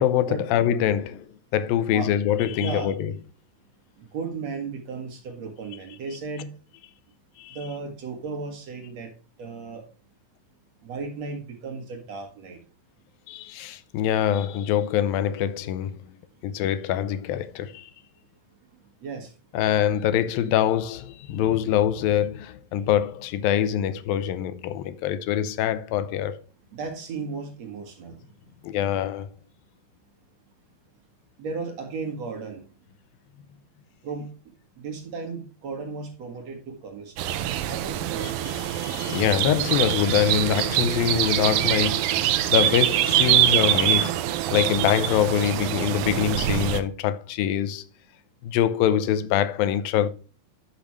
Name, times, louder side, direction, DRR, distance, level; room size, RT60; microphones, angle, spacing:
voice 1, 0.0-3.1 7.4-7.6 13.3-16.0 16.4-17.9 19.5-26.4 28.6-29.4 38.5-47.8 48.4-50.1, left 10 dB, 90° left, 2.5 m, -24 dB
voice 2, 2.6-2.9 4.0-6.5 7.5-9.1 9.4-9.8 10.8-12.6 18.8-19.3 26.7-28.2 31.4-32.6 34.0-34.3 34.8-37.3 37.7-38.3, right 4 dB, 55° right, 2.5 m, -35 dB
sound 1, 37.2-46.8, right 12 dB, 90° right, 2.5 m, -24 dB
12.0 x 7.0 x 3.1 m
omnidirectional pair, 4.1 m